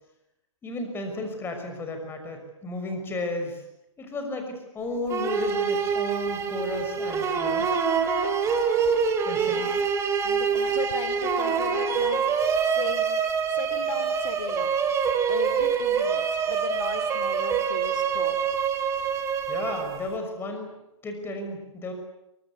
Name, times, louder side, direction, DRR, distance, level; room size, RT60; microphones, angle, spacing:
voice 1, 0.6-3.6 4.0-7.7 9.3-9.8 19.5-20.7 21.0-21.9, left 2 dB, 15° left, 5 dB, 6.0 m, -33 dB
sound 1, 5.1-20.2, right 6 dB, 15° right, 3.3 m, -25 dB
voice 2, 9.4-9.8 10.2-12.2 12.7-13.2 13.5-14.8 15.3-18.4, left 6 dB, 70° left, 11 dB, 3.0 m, -36 dB
24.5 x 24.0 x 8.4 m, 0.84 s
hypercardioid pair, 140°, 16 cm